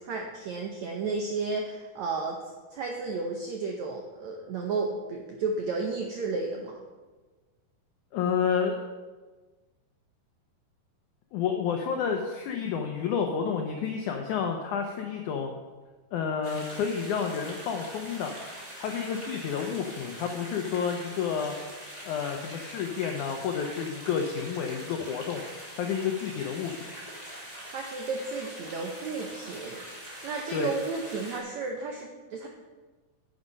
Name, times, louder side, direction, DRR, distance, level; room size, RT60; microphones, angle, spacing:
voice 1, 0.0-2.4 2.7-6.8 27.7-29.8 30.2-32.5, right 4 dB, 80° right, 1 dB, 1.6 m, -33 dB
voice 2, 8.1-8.8 11.3-15.5 16.1-18.3 18.8-21.6 22.1-25.4 25.7-26.7 30.5-30.7, left 7 dB, 80° left, 3 dB, 1.7 m, -30 dB
sound 1, 16.4-31.4, right 1 dB, 15° right, 2.0 m, -43 dB
9.8 x 8.6 x 5.3 m, 1.3 s
omnidirectional pair, 4.5 m